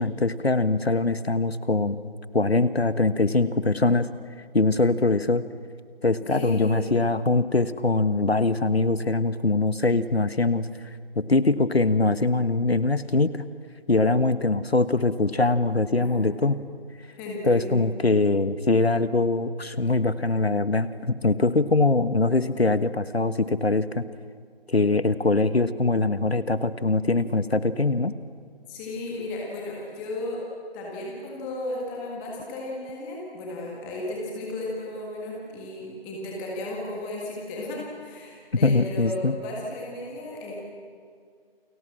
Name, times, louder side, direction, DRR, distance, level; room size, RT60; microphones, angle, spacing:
voice 1, 0.0-4.1 4.5-5.4 6.0-10.7 11.2-13.5 13.9-16.6 17.4-20.9 21.2-24.0 24.7-28.1 38.6-39.3, left 3 dB, 80° left, 13 dB, 1.5 m, -22 dB
voice 2, 6.3-6.9 15.9-16.4 17.2-17.9 28.7-30.4 30.7-40.5, left 1 dB, 5° left, -3 dB, 1.7 m, -34 dB
29.5 x 23.5 x 7.6 m, 2.1 s
figure-of-eight pair, 165°, 31 cm